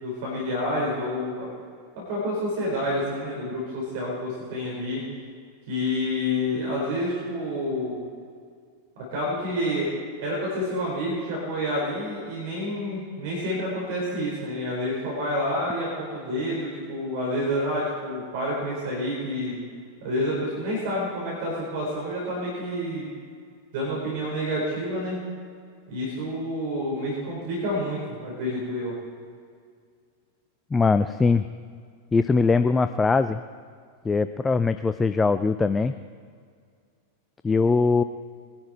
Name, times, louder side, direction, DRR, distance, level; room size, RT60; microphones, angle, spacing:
voice 1, 0.0-1.5 1.9-5.1 5.7-8.0 9.0-9.9 10.2-19.6 20.0-23.1 23.7-25.2 25.9-28.9, left 1 dB, 50° right, -4 dB, 4.8 m, -28 dB
voice 2, 30.7-31.5 32.1-33.4 34.0-35.9 37.4-38.0, left 4 dB, 15° left, 11 dB, 0.4 m, -21 dB
22.0 x 11.5 x 4.5 m, 2.1 s
figure-of-eight pair, 90°, 0 cm